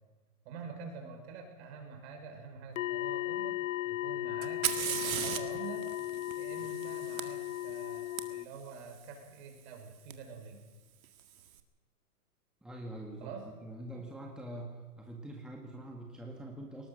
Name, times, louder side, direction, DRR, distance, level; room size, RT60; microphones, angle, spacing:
voice 1, 0.4-5.9 6.4-10.6 13.2-13.4, right 5 dB, 45° right, 4 dB, 5.6 m, -46 dB
sound 1, 2.8-8.5, left 15 dB, 55° left, 0.6 m, -36 dB
Fire, 4.4-8.2 10.1-10.2 11.0-11.4, right 10 dB, 60° right, 2.0 m, -37 dB
voice 2, 12.6-13.3 13.6-16.9, right 1 dB, ahead, 0 dB, 1.6 m, -44 dB
21.5 x 19.0 x 6.3 m, 1.3 s
hypercardioid pair, 135°, 47 cm